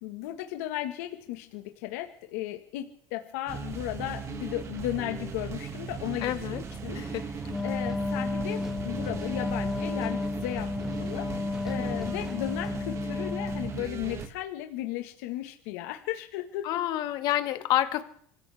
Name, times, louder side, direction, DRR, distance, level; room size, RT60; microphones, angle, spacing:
voice 1, 0.0-7.0 7.6-16.7, left 14 dB, 85° left, 5 dB, 1.7 m, -35 dB
sound 1, 3.5-14.3, right 6 dB, 35° right, 2.1 m, -38 dB
voice 2, 6.2-6.6 6.9-7.2 11.8-12.1 16.6-18.0, left 13 dB, 60° left, 8 dB, 2.0 m, -29 dB
sound 2, 6.7-13.5 13.8-13.9 14.2-14.3, equal, 5° right, 1.7 m, -43 dB
Wind instrument woodwind instrument, 7.4-13.9, left 4 dB, 10° left, 0.6 m, -33 dB
25.5 x 15.0 x 3.6 m, 0.63 s
supercardioid pair, 125°, 8 cm